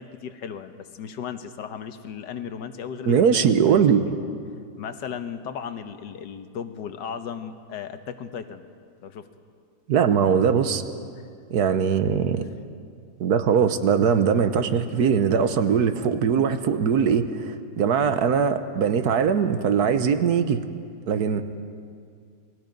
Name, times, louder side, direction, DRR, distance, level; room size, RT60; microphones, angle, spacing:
voice 1, 0.0-4.1 4.8-8.7 9.0-9.3, left 7 dB, 90° left, 9 dB, 1.7 m, -36 dB
voice 2, 3.0-4.0 9.9-10.8 11.5-12.4 13.2-20.6 21.1-21.4, right 7 dB, 65° right, 10 dB, 1.5 m, -21 dB
29.5 x 20.0 x 5.3 m, 2.2 s
omnidirectional pair, 1.8 m